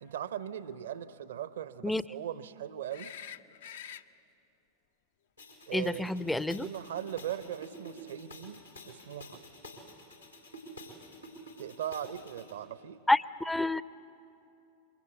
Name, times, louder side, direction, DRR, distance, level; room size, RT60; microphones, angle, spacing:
voice 1, 0.0-3.1 5.7-9.4 11.6-13.0, right 10 dB, 60° right, 15 dB, 0.7 m, -39 dB
sound 1, 2.9-4.0 6.9-7.0, left 9 dB, 60° left, 0.6 m, -45 dB
sound 2, 5.4-12.5, equal, 85° left, 4.2 m, -49 dB
voice 2, 5.7-6.7 13.1-13.8, left 2 dB, 5° left, 17 dB, 0.5 m, -28 dB
26.5 x 23.5 x 8.2 m, 2.8 s
figure-of-eight pair, 90°, 0 cm